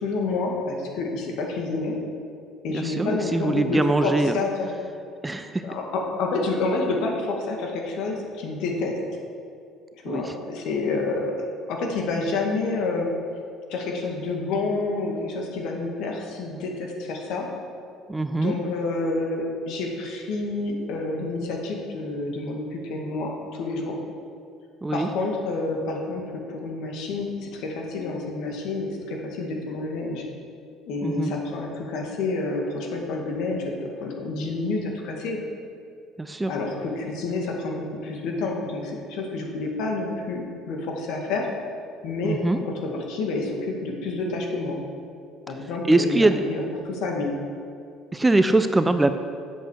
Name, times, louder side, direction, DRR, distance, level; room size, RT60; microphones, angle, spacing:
voice 1, 0.0-2.0 2.6-4.7 5.6-9.0 10.0-13.1 13.7-17.5 18.3-24.0 24.9-26.2 26.5-30.2 30.9-35.4 36.5-41.5 42.0-42.4 42.6-44.8 45.5-47.4, left 3 dB, 70° left, 0 dB, 2.0 m, -29 dB
voice 2, 2.7-4.4 5.2-5.6 10.1-10.3 18.1-18.6 24.8-25.1 31.0-31.3 36.2-36.5 42.2-42.6 45.9-46.4 48.1-49.1, right 2 dB, 10° right, 9 dB, 0.4 m, -22 dB
8.4 x 7.8 x 6.5 m, 2.4 s
cardioid pair, 155°, 0 cm